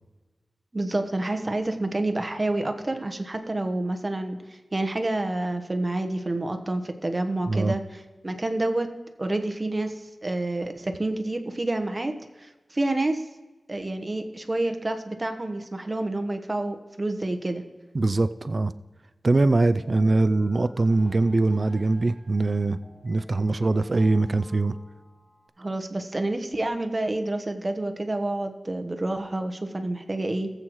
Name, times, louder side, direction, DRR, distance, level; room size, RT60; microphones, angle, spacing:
voice 1, 0.7-8.9 9.2-13.2 13.7-17.6 25.6-30.5, right 2 dB, 35° right, 6 dB, 1.0 m, -28 dB
voice 2, 17.9-18.7 19.2-22.8 23.0-24.7, right 2 dB, 50° right, 12 dB, 0.4 m, -22 dB
sound 1, 19.8-25.5, equal, 20° left, 3.8 m, -50 dB
19.0 x 7.9 x 3.1 m, 1.2 s
wide cardioid pair, 90°, 0 cm